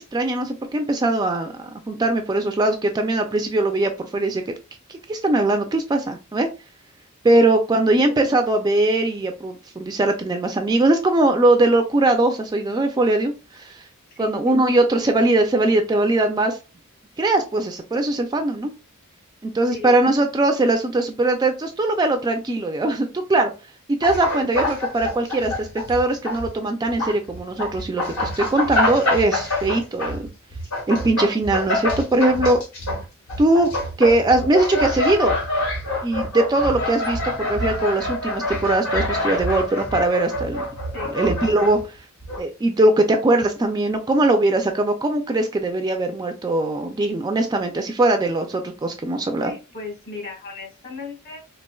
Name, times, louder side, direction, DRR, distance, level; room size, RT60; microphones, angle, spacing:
voice 1, 0.0-4.5 4.9-6.5 7.2-13.8 14.2-16.6 17.2-18.7 19.4-23.5 23.9-30.3 30.9-32.6 33.4-33.7 34.0-35.3 36.0-40.6 41.1-41.8 42.4-49.5, right 2 dB, 20° right, 5 dB, 0.3 m, -21 dB
sound 1, 24.0-26.5 26.8-41.8 42.2-42.4, left 1 dB, 70° left, 1.8 m, -26 dB
voice 2, 49.3-51.4, left 3 dB, 40° left, 1 dB, 1.4 m, -36 dB
4.2 x 2.5 x 2.2 m, 0.30 s
head